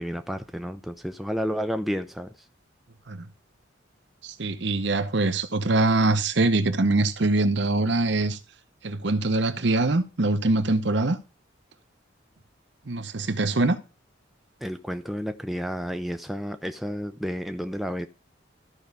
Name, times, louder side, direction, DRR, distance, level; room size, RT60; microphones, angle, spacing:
voice 1, 0.0-2.3 14.6-18.1, equal, ahead, 0.5 m, -31 dB
voice 2, 4.2-8.4 8.8-11.2 12.9-13.8, right 2 dB, 60° right, 0.9 m, -23 dB
14.0 x 5.4 x 3.4 m
head